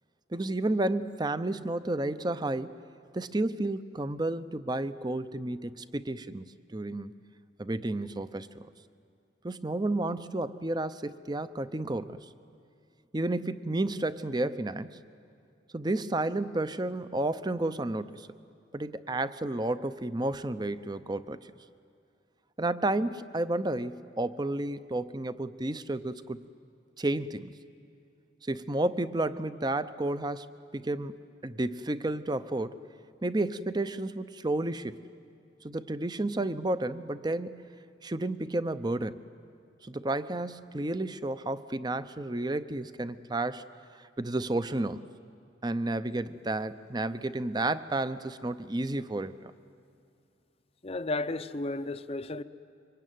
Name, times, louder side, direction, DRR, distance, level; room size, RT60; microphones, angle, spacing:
voice 1, 0.3-2.8 3.1-7.1 7.6-8.6 9.4-12.3 13.1-15.0 15.7-18.3 18.7-21.4 22.6-26.4 27.0-27.5 28.5-32.8 33.2-35.0 35.6-37.6 38.0-39.2 39.8-43.6 44.0-45.0 45.6-49.5, right 2 dB, 25° right, 0.7 m, -31 dB
voice 2, 50.8-52.4, left 2 dB, 30° left, 0.7 m, -33 dB
26.5 x 24.0 x 9.3 m
head